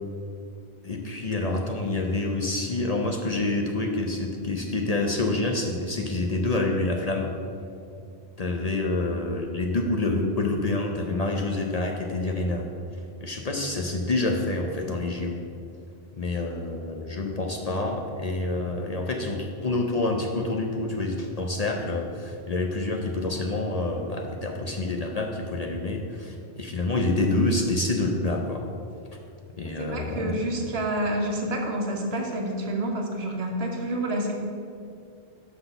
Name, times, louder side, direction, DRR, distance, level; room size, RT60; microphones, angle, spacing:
voice 1, 0.8-7.3 8.4-12.7 13.2-15.4 16.1-28.6 29.6-30.3, left 2 dB, 45° left, 1 dB, 0.6 m, -27 dB
voice 2, 29.6-34.3, right 1 dB, 70° right, 1 dB, 1.3 m, -28 dB
6.0 x 5.8 x 6.7 m, 2.5 s
omnidirectional pair, 1.1 m